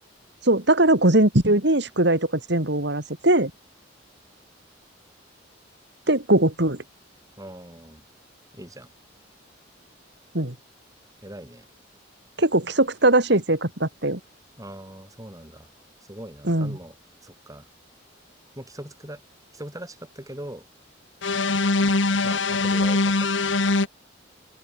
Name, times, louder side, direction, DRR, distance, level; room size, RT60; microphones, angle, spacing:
voice 1, 0.4-3.5 6.1-6.8 10.3-10.5 12.4-14.2 16.4-16.8, right 1 dB, 60° right, 3.4 m, -20 dB
voice 2, 7.4-8.0 8.5-8.9 11.2-11.7 14.6-15.7 16.1-16.9 17.2-17.6 18.6-19.2 19.5-20.6 22.2-23.8, right 1 dB, 20° right, 6.0 m, -41 dB
sound 1, 21.2-23.9, left 3 dB, 75° left, 1.7 m, -22 dB
open air
head